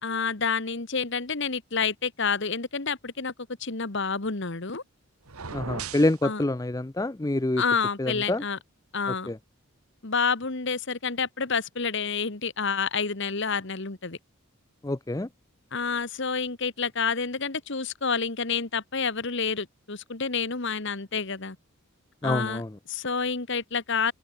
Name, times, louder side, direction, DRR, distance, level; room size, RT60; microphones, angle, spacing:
voice 1, 0.0-3.3 3.6-4.8 6.2-6.4 7.6-8.6 8.9-9.3 10.0-14.2 15.7-21.6 22.2-22.6 22.9-24.1, left 5 dB, 55° left, 1.4 m, -29 dB
sound 1, 5.2-6.2, right 5 dB, 90° right, 1.7 m, -36 dB
voice 2, 5.5-7.6 8.0-8.4 9.3-9.4 14.8-15.3 22.2-22.7, left 2 dB, 15° left, 0.5 m, -26 dB
head